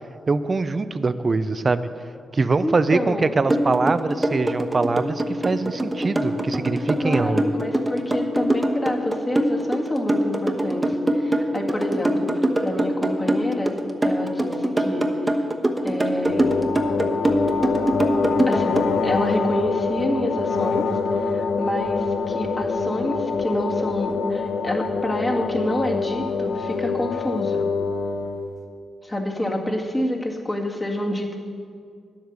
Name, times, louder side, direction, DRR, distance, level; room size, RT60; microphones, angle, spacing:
voice 1, 0.3-1.9 2.3-7.5, right 3 dB, 40° right, 13 dB, 0.6 m, -23 dB
voice 2, 2.6-3.4 7.0-13.8 14.0-15.1 15.8-16.4 18.5-27.6 29.0-31.4, left 1 dB, 25° left, 0 dB, 1.9 m, -28 dB
sound 1, 3.5-18.9, right 1 dB, 20° right, 1.1 m, -22 dB
sound 2, 16.3-28.5, left 4 dB, 80° left, 0.9 m, -25 dB
10.0 x 8.0 x 6.8 m, 2.2 s
cardioid pair, 55°, 0 cm